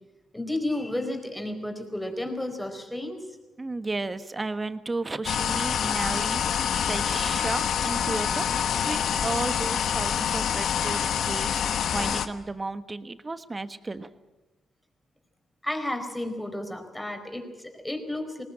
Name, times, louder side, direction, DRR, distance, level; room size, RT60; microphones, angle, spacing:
voice 1, 0.3-3.2 15.6-18.4, left 1 dB, 10° left, 5 dB, 4.5 m, -32 dB
voice 2, 3.6-6.6 6.9-14.1, right 3 dB, 25° right, 11 dB, 1.4 m, -33 dB
sound 1, 5.2-12.3, left 8 dB, 75° left, 1.1 m, -26 dB
21.0 x 19.0 x 8.8 m, 1.1 s
cardioid pair, 70°, 0 cm